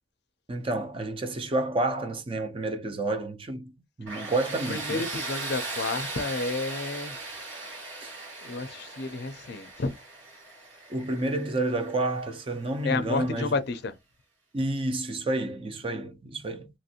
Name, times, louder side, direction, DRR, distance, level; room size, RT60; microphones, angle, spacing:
voice 1, 0.5-3.7 4.0-5.0 8.0-8.1 10.9-13.6 14.5-16.7, right 2 dB, 25° right, 0.5 m, -30 dB
Tools, 4.1-12.8, right 3 dB, 75° right, 1.5 m, -38 dB
voice 2, 4.7-7.2 8.4-9.9 12.8-14.0, left 3 dB, 55° left, 0.5 m, -31 dB
2.9 x 2.5 x 2.7 m
head